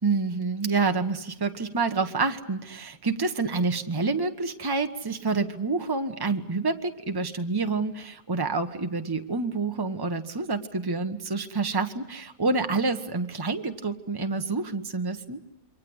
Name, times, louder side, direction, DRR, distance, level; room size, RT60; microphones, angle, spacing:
voice 1, 0.0-15.4, right 4 dB, 15° right, 7 dB, 1.3 m, -28 dB
28.0 x 24.5 x 8.1 m, 0.85 s
omnidirectional pair, 1.5 m